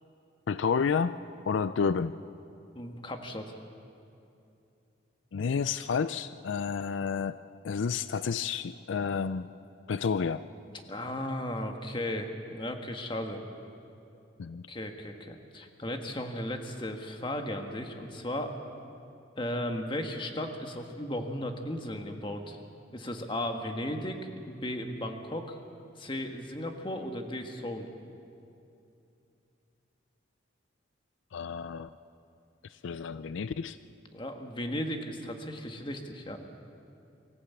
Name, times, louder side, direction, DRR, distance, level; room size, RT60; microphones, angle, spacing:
voice 1, 0.5-1.2 1.5-2.1 5.3-9.5 9.9-10.5 14.4-14.6 31.3-31.9 32.7-33.8, left 6 dB, 75° left, 14 dB, 0.4 m, -30 dB
voice 2, 2.7-3.4 10.9-13.4 14.7-18.5 19.4-22.6 22.9-25.6 26.0-27.9 34.1-36.4, left 1 dB, 25° left, 4 dB, 1.5 m, -35 dB
24.0 x 14.5 x 8.3 m, 2.7 s
head